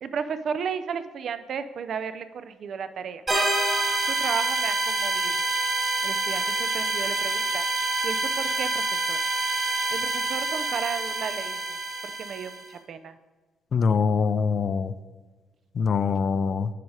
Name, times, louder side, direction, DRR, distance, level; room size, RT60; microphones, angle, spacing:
voice 1, 0.0-3.2 4.1-5.4 6.0-8.8 9.1-9.2 9.9-11.6 12.2-13.2, right 6 dB, 60° right, 11 dB, 0.5 m, -33 dB
sound 1, 3.3-12.6, right 2 dB, 30° right, 2.1 m, -27 dB
voice 2, 13.7-14.9 15.8-16.7, left 5 dB, 50° left, 13 dB, 0.4 m, -23 dB
9.5 x 4.8 x 4.8 m, 1.3 s
cardioid pair, 90°, 0 cm